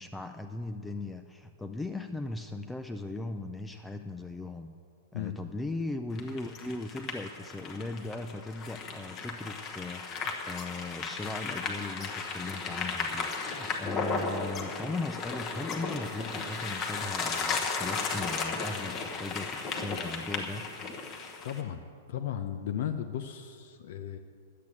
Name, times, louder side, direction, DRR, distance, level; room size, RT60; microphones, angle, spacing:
voice 1, 0.0-4.7 5.1-20.7, left 2 dB, 5° left, 6 dB, 0.3 m, -38 dB
sound 1, 6.2-21.6, left 4 dB, 20° left, 1.1 m, -35 dB
voice 2, 21.4-21.8 22.1-24.2, left 10 dB, 55° left, 7 dB, 0.6 m, -35 dB
11.0 x 8.4 x 8.5 m, 2.2 s
supercardioid pair, 170°, 0 cm